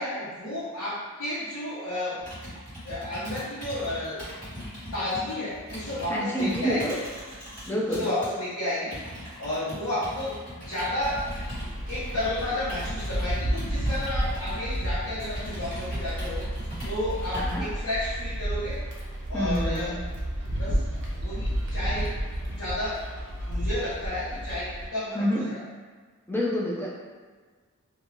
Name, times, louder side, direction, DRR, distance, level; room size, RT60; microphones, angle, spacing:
voice 1, 0.0-2.2 2.8-4.2 4.9-7.0 7.7-9.0 9.4-11.3 11.9-16.5 16.9-18.8 19.3-20.0 20.6-20.8 21.1-22.2 22.5-23.1 23.4-25.6, left 1 dB, 85° left, -11 dB, 0.7 m, -32 dB
Computer keyboard, 2.2-8.3 8.9-17.7, equal, 35° left, 1.3 m, -40 dB
voice 2, 6.1-6.9 7.7-8.1 17.3-17.6 19.3-20.0 25.1-25.4 26.3-26.9, equal, 10° left, -5 dB, 0.5 m, -27 dB
sound 1, 11.0-24.9, equal, 55° right, 0.6 m, -31 dB
2.4 x 2.2 x 3.1 m, 1.5 s
head